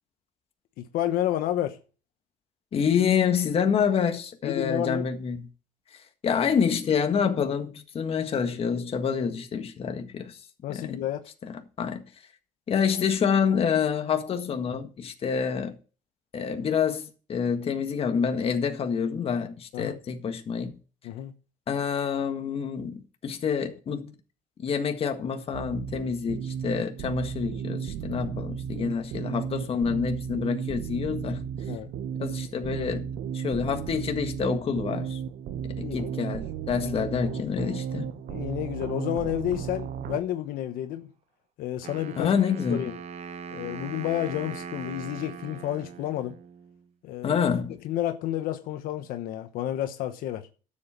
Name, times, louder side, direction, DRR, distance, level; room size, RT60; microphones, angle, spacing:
voice 1, 0.8-1.8 4.4-5.1 10.6-11.3 19.7-20.0 21.0-21.3 31.7-31.9 35.8-36.1 38.3-41.1 41.6-42.3 42.7-43.0 43.5-46.4 47.0-47.4 47.8-50.5, left 12 dB, 80° left, 1.1 m, -30 dB
voice 2, 2.7-5.5 6.2-10.4 10.7-11.0 11.4-12.0 12.7-15.7 16.3-20.7 21.7-24.1 24.6-31.4 32.2-33.1 33.3-35.2 35.8-38.2 42.2-42.8 47.2-47.8, left 6 dB, 40° left, 1.7 m, -27 dB
sound 1, 25.5-40.2, right 8 dB, 85° right, 1.1 m, -34 dB
Wind instrument woodwind instrument, 41.8-46.8, right 6 dB, 45° right, 1.0 m, -40 dB
12.5 x 7.6 x 4.5 m
cardioid pair, 135°, 15 cm